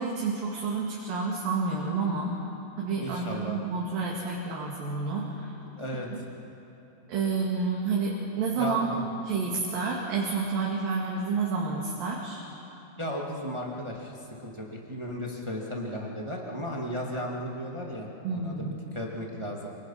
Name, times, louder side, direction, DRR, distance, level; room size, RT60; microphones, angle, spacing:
voice 1, 0.0-2.4 2.8-5.5 6.1-6.2 7.1-8.9 9.2-12.4 18.2-18.9, right 4 dB, 60° right, -3 dB, 3.7 m, -29 dB
voice 2, 3.0-3.6 5.8-6.1 8.6-9.0 13.0-19.7, equal, 30° right, -2 dB, 0.5 m, -35 dB
27.0 x 24.5 x 5.7 m, 2.9 s
omnidirectional pair, 4.7 m